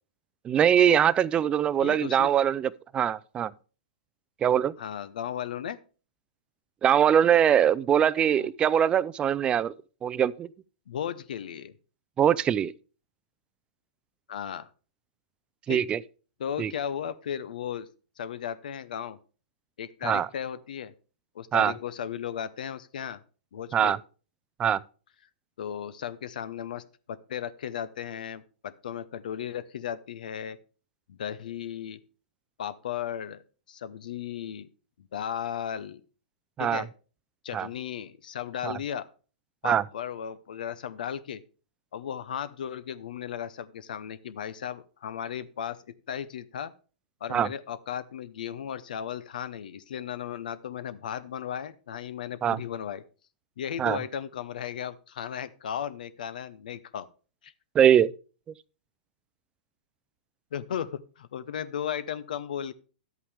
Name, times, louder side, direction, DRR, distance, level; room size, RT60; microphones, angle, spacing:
voice 1, 0.4-3.5 4.4-4.7 6.8-9.7 10.0-10.5 12.2-12.7 15.7-16.0 16.6-16.7 20.0-20.3 21.5-21.7 23.7-24.0 24.6-24.8 36.6-36.8 37.5-37.7 38.6-38.8 39.6-39.8 47.3-47.5 52.4-52.6 53.8-54.0 57.7-58.1, right 9 dB, 20° right, 0.4 m, -22 dB
voice 2, 1.8-2.3 4.8-5.8 8.3-8.5 10.9-11.7 14.3-14.7 15.7-15.8 16.4-17.9 18.2-19.2 19.8-20.9 21.3-23.2 23.5-23.9 25.6-30.6 31.1-32.0 32.6-33.4 33.7-34.7 35.0-36.0 36.6-36.9 37.4-39.1 39.6-41.4 41.9-46.7 47.2-53.0 53.6-57.1 57.4-57.5 60.5-62.7, left 9 dB, 70° left, 0.7 m, -35 dB
11.0 x 8.3 x 3.5 m
hypercardioid pair, 115°, 5 cm